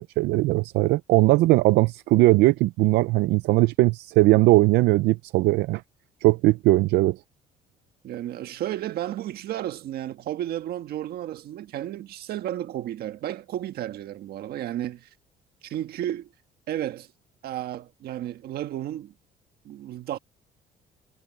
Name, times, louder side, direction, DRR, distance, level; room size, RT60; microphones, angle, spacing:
voice 1, 0.0-5.8 6.2-7.2, right 19 dB, 85° right, 0.5 m, -19 dB
voice 2, 8.0-15.1 15.6-16.3 16.7-17.1 17.4-19.1 19.6-20.2, right 12 dB, 65° right, 1.5 m, -32 dB
cardioid pair, 110°, 17 cm